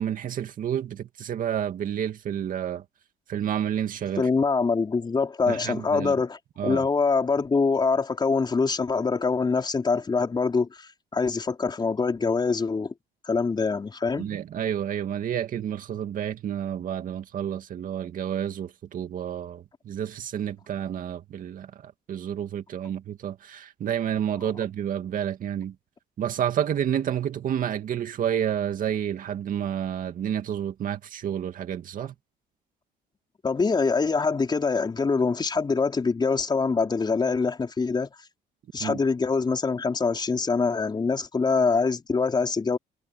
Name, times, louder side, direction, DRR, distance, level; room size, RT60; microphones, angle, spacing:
voice 1, 0.0-2.8 3.3-4.3 5.5-6.2 6.6-6.9 14.2-25.7 26.2-32.1 38.8-39.0, right 9 dB, 55° right, 2.2 m, -30 dB
voice 2, 4.1-12.9 13.2-14.3 33.4-38.1 38.7-42.8, left 4 dB, 25° left, 4.5 m, -24 dB
cardioid pair, 110°, 17 cm